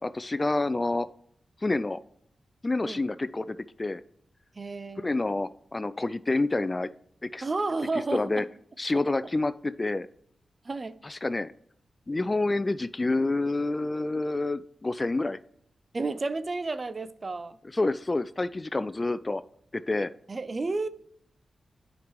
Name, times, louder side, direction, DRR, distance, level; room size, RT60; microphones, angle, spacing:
voice 1, 0.0-1.1 1.6-2.0 2.6-4.0 5.0-6.9 7.2-7.4 8.1-8.4 8.8-10.1 11.0-11.5 12.1-15.4 17.7-19.4 19.7-20.1, left 2 dB, 30° left, 0.4 m, -28 dB
voice 2, 4.5-5.1 7.4-8.5 10.6-11.0 15.9-17.6 20.3-20.9, right 3 dB, 45° right, 0.6 m, -31 dB
9.3 x 5.2 x 3.1 m
cardioid pair, 45°, 0 cm